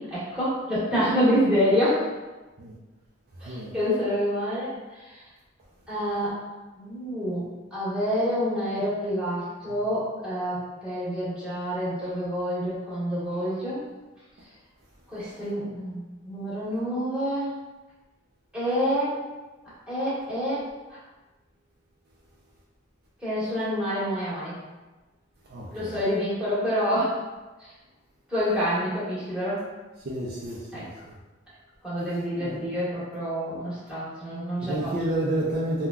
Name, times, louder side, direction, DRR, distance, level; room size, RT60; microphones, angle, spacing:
voice 1, 0.0-2.0 3.4-4.7 5.9-6.4 6.8-7.4 7.7-13.8 15.1-17.5 18.5-19.1 19.9-20.6 23.2-24.5 25.7-27.2 28.3-29.6 30.7-30.9 31.8-34.9, equal, 5° right, -12 dB, 1.3 m, -27 dB
voice 2, 3.4-3.8 25.5-26.0 30.0-31.2 32.4-32.6 34.6-35.9, right 1 dB, 55° right, -4 dB, 0.4 m, -30 dB
3.6 x 2.2 x 2.3 m, 1.2 s
head